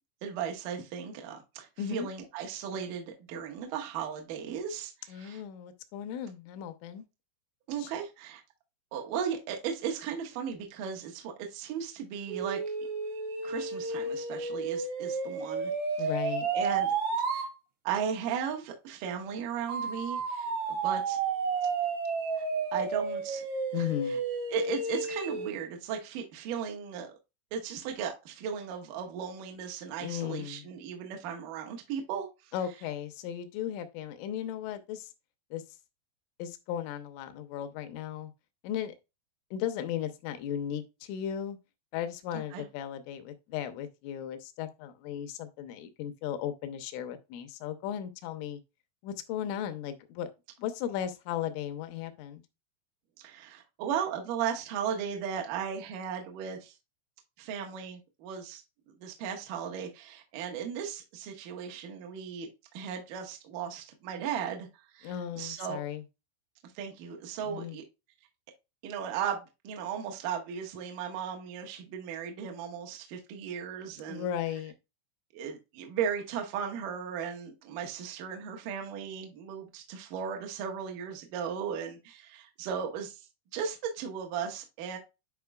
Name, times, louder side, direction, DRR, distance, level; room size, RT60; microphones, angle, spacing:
voice 1, 0.2-4.9 5.2-5.4 7.7-8.4 8.9-12.6 13.4-15.7 16.0-16.1 16.5-16.9 17.3-17.5 17.8-21.2 22.4-22.5 22.7-23.4 23.8-23.9 24.5-27.1 27.5-32.3 42.5-42.6 53.2-56.7 57.4-58.6 59.0-62.5 62.7-64.7 65.0-65.8 66.8-67.8 68.8-74.3 75.3-83.3 83.5-85.0, right 7 dB, 80° right, 1.9 m, -36 dB
voice 2, 1.8-2.1 5.1-7.1 7.8-7.9 16.0-16.5 23.7-24.2 30.0-30.7 32.5-35.1 35.5-35.6 36.4-38.3 38.6-38.9 39.5-41.6 41.9-48.6 49.0-50.3 50.6-52.4 65.0-66.0 67.4-67.8 74.1-74.7, left 10 dB, 85° left, 3.3 m, -36 dB
sound 1, 12.3-17.5 19.7-25.5, right 4 dB, 60° right, 1.5 m, -32 dB
10.5 x 5.2 x 2.3 m
omnidirectional pair, 5.6 m